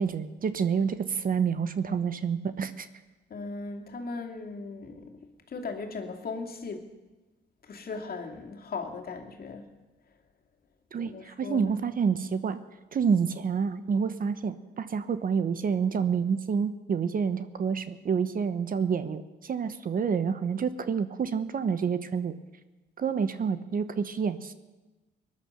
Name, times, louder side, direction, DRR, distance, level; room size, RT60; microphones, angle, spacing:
voice 1, 0.0-2.9 10.9-12.6 12.9-22.4 23.0-24.5, right 6 dB, 45° right, 12 dB, 0.9 m, -28 dB
voice 2, 3.3-5.1 5.5-6.9 7.7-9.7 11.0-11.8, left 4 dB, 50° left, 2 dB, 2.6 m, -38 dB
19.0 x 11.0 x 6.8 m, 1.1 s
cardioid pair, 90°, 20 cm